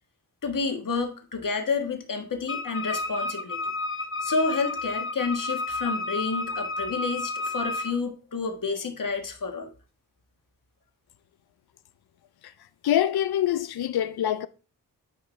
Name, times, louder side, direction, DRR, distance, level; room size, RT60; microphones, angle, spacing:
voice 1, 0.4-3.6 4.2-9.7, left 4 dB, 60° left, 1.5 m, -29 dB
Wind instrument woodwind instrument, 2.5-8.0, left 3 dB, 35° left, 0.7 m, -31 dB
voice 2, 12.8-14.5, left 11 dB, 90° left, 0.5 m, -25 dB
9.8 x 4.7 x 3.3 m
cardioid pair, 65°, 37 cm